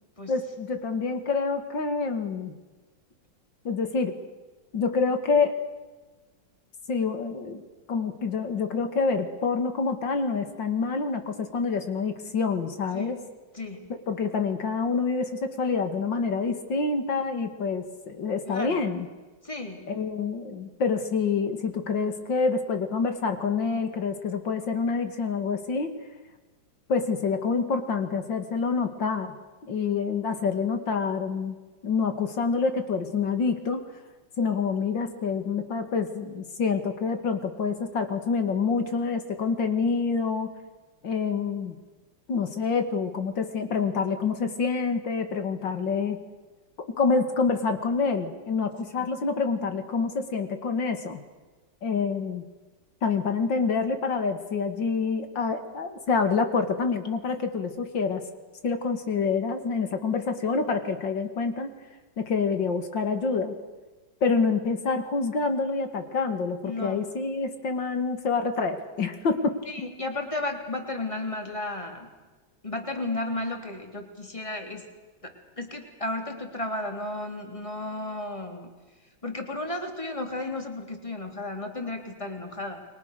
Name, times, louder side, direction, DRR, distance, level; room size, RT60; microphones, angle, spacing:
voice 1, 0.3-2.5 3.6-4.2 4.7-5.6 6.9-7.6 7.9-13.2 13.9-19.1 19.9-25.9 26.9-29.4 29.6-33.8 34.4-40.5 41.0-41.8 42.3-46.2 46.9-51.2 51.8-52.4 53.0-58.2 58.6-61.7 62.2-63.6 64.2-69.6, left 4 dB, 70° left, 7 dB, 2.9 m, -27 dB
voice 2, 13.5-13.8 18.5-18.8 19.4-19.8 49.0-49.1 66.6-67.0 69.7-72.1 72.6-74.8 75.2-78.7 79.2-82.8, left 2 dB, 15° left, 3 dB, 3.4 m, -33 dB
29.5 x 23.0 x 6.7 m, 1.2 s
omnidirectional pair, 2.1 m